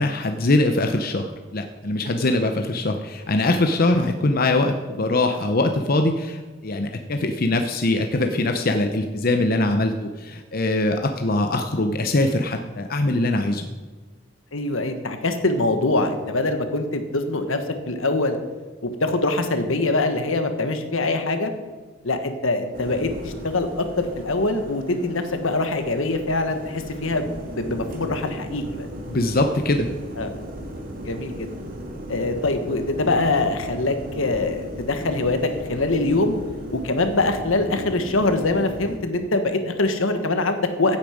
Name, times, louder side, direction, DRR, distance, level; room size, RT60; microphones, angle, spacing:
voice 1, 0.0-13.7 29.1-29.9, left 2 dB, 45° left, 5 dB, 0.7 m, -22 dB
voice 2, 14.5-18.4 18.8-21.5 22.0-28.9 30.2-30.3 31.0-31.5 32.1-36.4 36.7-41.0, left 2 dB, 75° left, 7 dB, 1.4 m, -23 dB
sound 1, 22.7-39.0, equal, 45° right, 2.2 m, -36 dB
15.5 x 8.8 x 5.1 m, 1.4 s
head